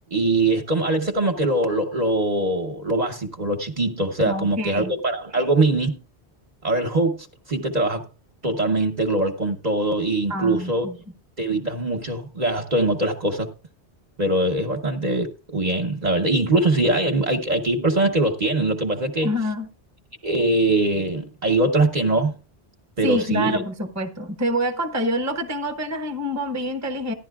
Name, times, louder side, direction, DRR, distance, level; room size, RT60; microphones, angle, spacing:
voice 1, 0.1-6.0 6.6-8.0 8.4-10.9 11.4-13.5 14.2-19.3 20.2-22.3 23.0-23.6, right 2 dB, 40° right, 1.0 m, -22 dB
voice 2, 4.3-4.9 10.3-10.9 19.2-19.7 23.0-27.1, equal, 15° right, 0.9 m, -26 dB
15.0 x 11.0 x 2.3 m
omnidirectional pair, 1.1 m